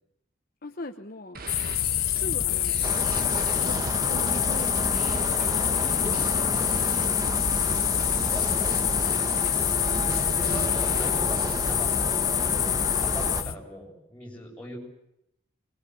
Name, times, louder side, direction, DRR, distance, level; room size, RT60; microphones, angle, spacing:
voice 1, 0.6-1.5 2.1-2.8 3.2-4.7 5.2-6.3 6.9-8.1, left 2 dB, 45° left, 6 dB, 1.1 m, -41 dB
sound 1, 1.3-11.7, right 4 dB, 45° right, 1.5 m, -42 dB
sound 2, 1.5-13.5, left 13 dB, 80° left, 1.0 m, -26 dB
sound 3, 2.8-13.4, right 1 dB, 20° right, 1.3 m, -31 dB
voice 2, 3.4-4.6 6.5-6.8 8.9-14.8, equal, 5° left, -2 dB, 7.8 m, -42 dB
24.5 x 22.0 x 9.4 m, 0.82 s
head